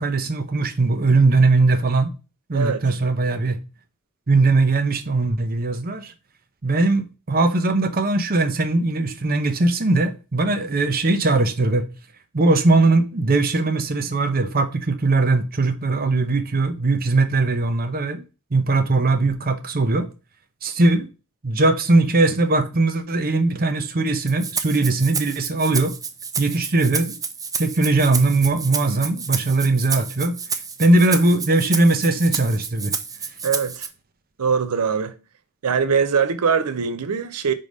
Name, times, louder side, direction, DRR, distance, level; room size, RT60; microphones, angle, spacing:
voice 1, 0.0-2.1 2.5-3.6 4.3-6.1 6.6-11.8 12.3-18.2 18.5-20.1 20.6-21.1 21.4-25.9 26.4-27.1 27.6-30.4 30.8-32.9, right 2 dB, 45° right, 0.8 m, -20 dB
voice 2, 2.5-2.9 33.4-33.9 34.4-35.1 35.6-37.5, right 6 dB, 90° right, 0.6 m, -22 dB
Rattle (instrument), 24.3-33.9, right 5 dB, 15° right, 0.5 m, -30 dB
4.9 x 3.8 x 5.2 m
head